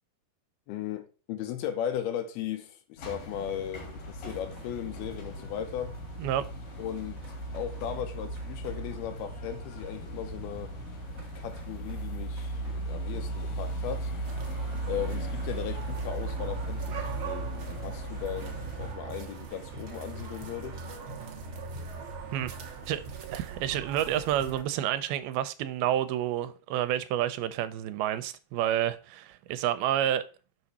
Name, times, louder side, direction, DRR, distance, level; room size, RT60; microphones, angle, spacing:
voice 1, 0.7-6.0 6.8-7.2 7.5-10.7 11.4-14.1 14.8-20.9, left 10 dB, 85° left, 2.8 m, -37 dB
sound 1, 3.0-18.9, right 1 dB, 65° left, 3.4 m, -37 dB
sound 2, 3.7-22.7, right 2 dB, 35° right, 1.4 m, -52 dB
sound 3, 14.3-24.6, right 5 dB, 65° right, 1.3 m, -41 dB
voice 2, 22.3-23.0 23.3-30.2, right 11 dB, 85° right, 2.5 m, -29 dB
6.3 x 6.2 x 4.1 m
omnidirectional pair, 4.4 m